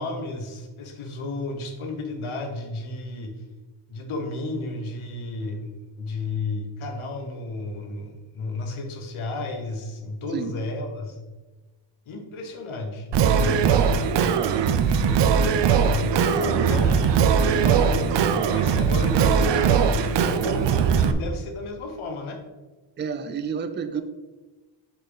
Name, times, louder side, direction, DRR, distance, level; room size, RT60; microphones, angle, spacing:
voice 1, 0.0-3.4 3.9-5.7 6.0-11.2 12.1-13.1 13.4-14.1 14.8-15.2 15.9-22.4, left 2 dB, 75° left, 4 dB, 1.3 m, -33 dB
Singing, 13.1-21.1, right 6 dB, 60° right, 0.6 m, -20 dB
voice 2, 23.0-24.0, right 6 dB, 25° right, 9 dB, 0.4 m, -29 dB
6.5 x 5.6 x 4.0 m, 1.2 s
cardioid pair, 130°, 49 cm